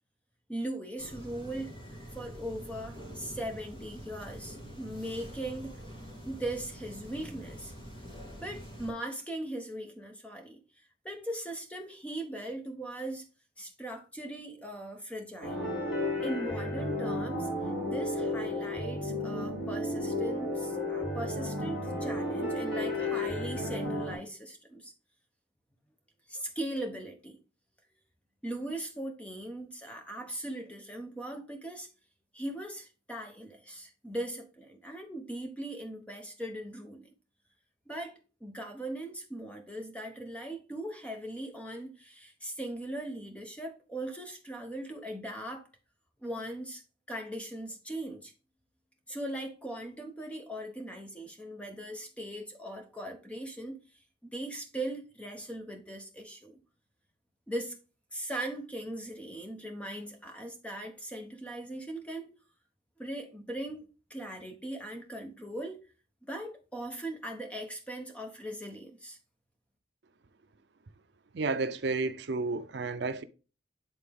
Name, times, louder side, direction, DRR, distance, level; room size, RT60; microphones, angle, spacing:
voice 1, 0.5-1.7 2.1-5.7 6.3-7.7 8.4-13.3 13.6-15.7 16.2-17.5 17.8-24.9 26.3-27.4 28.4-31.9 32.3-37.1 37.9-45.7 46.2-46.8 47.1-48.3 49.1-53.8 54.2-56.6 57.5-57.8 58.1-62.3 63.0-65.8 66.3-69.2, right 1 dB, 5° left, 1.0 m, -39 dB
sound 1, 1.0-8.9, equal, 25° left, 2.0 m, -46 dB
sound 2, 15.4-24.2, left 1 dB, 65° left, 3.0 m, -33 dB
voice 2, 71.3-73.2, right 3 dB, 60° right, 0.5 m, -31 dB
8.7 x 3.7 x 3.6 m
head